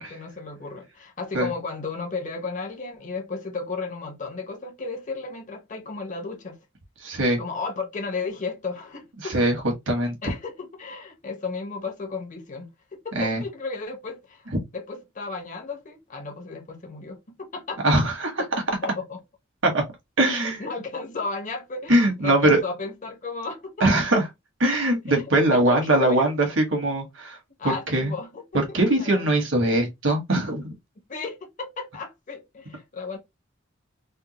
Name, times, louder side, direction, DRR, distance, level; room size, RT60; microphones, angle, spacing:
voice 1, 0.0-6.6 7.4-9.4 10.2-14.5 14.7-17.8 18.4-19.2 20.3-23.9 25.1-26.5 27.6-29.4 31.1-33.2, left 4 dB, 40° left, 0.9 m, -34 dB
voice 2, 7.0-7.4 9.3-9.5 9.9-10.1 13.1-13.4 17.8-18.4 19.6-19.8 20.2-20.6 21.9-22.6 23.8-24.3 24.6-27.4 27.9-28.1 28.7-30.7, right 1 dB, 75° right, 1.3 m, -21 dB
3.4 x 2.3 x 2.9 m
head